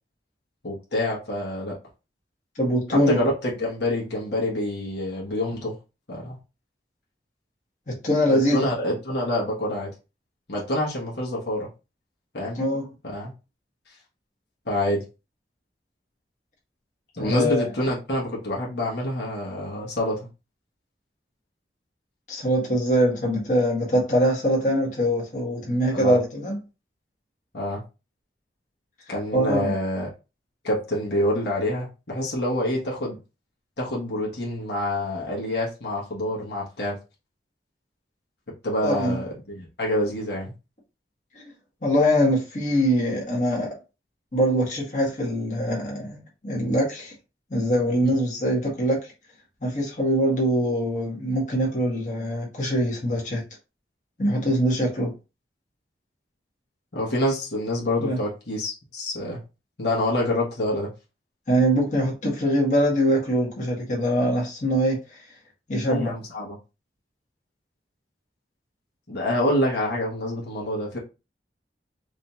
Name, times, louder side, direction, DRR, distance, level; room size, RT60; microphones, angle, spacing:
voice 1, 0.6-1.8 2.9-5.7 6.1-6.4 8.3-9.9 10.5-11.7 12.3-12.6 13.0-13.3 14.6-15.0 17.1-20.2 25.9-26.2 27.5-27.8 29.1-30.1 30.6-33.2 33.8-37.0 38.6-40.5 48.0-48.1 56.9-59.4 59.8-60.9 65.9-66.6 69.1-71.0, left 1 dB, 75° left, 1.3 m, -27 dB
voice 2, 2.5-3.2 7.9-8.6 12.5-12.9 17.2-17.7 22.3-26.6 29.3-29.7 38.8-39.2 41.3-41.5 41.8-43.7 44.3-47.1 47.5-49.0 49.6-53.4 54.2-55.1 58.0-58.2 61.5-65.0 65.7-66.1, equal, 45° left, 1.5 m, -23 dB
4.9 x 2.8 x 2.4 m
head